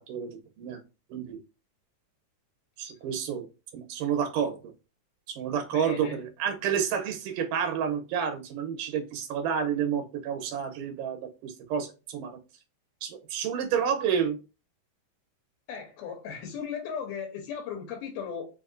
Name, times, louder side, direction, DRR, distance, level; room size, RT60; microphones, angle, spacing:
voice 1, 0.1-0.8 1.1-1.4 2.8-3.5 3.7-4.7 5.3-12.4 13.0-14.4, right 8 dB, 85° right, 2.4 m, -30 dB
voice 2, 5.7-6.2 15.7-18.5, left 7 dB, 85° left, 2.3 m, -36 dB
5.2 x 2.7 x 2.4 m
omnidirectional pair, 3.6 m